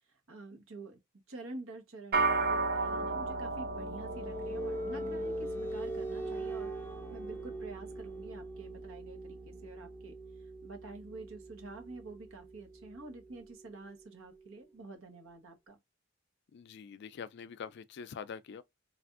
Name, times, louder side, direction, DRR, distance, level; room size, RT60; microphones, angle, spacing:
voice 1, 0.3-1.0 1.3-6.7 7.1-10.1 10.6-15.8, right 2 dB, 75° right, 1.1 m, -48 dB
sound 1, 2.1-11.7, right 3 dB, 50° right, 0.6 m, -37 dB
sound 2, 3.0-14.5, right 1 dB, 10° left, 0.6 m, -42 dB
voice 2, 16.5-18.6, left 6 dB, 55° left, 0.4 m, -44 dB
3.3 x 2.4 x 2.5 m
head